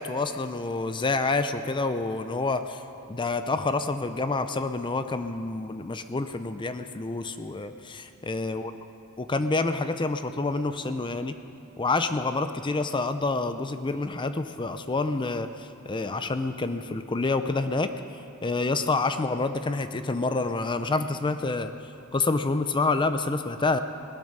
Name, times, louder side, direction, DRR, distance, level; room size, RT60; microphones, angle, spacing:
voice 1, 0.0-2.8 3.1-8.7 9.2-11.4 11.8-17.9 18.4-21.7 22.1-23.8, left 3 dB, 20° left, 10 dB, 0.5 m, -28 dB
18.5 x 12.0 x 6.4 m, 2.8 s
head